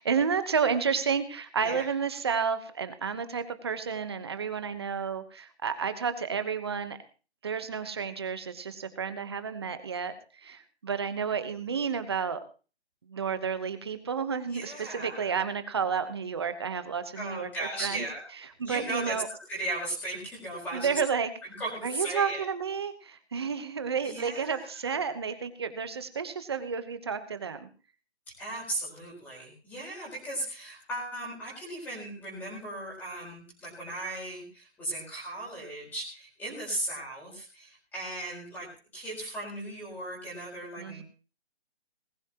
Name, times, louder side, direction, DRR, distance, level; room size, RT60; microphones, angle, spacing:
voice 1, 0.0-7.0 7.4-12.4 13.1-18.0 18.6-19.3 20.7-21.3 21.8-27.7 40.8-41.0, right 6 dB, 25° right, 11 dB, 1.0 m, -31 dB
voice 2, 14.5-15.3 17.1-18.2 18.6-19.2 19.5-21.0 21.4-22.5 24.0-25.0 28.4-41.0, right 1 dB, 5° left, -4 dB, 4.5 m, -37 dB
19.5 x 14.5 x 3.0 m, 0.36 s
hypercardioid pair, 170°, 33 cm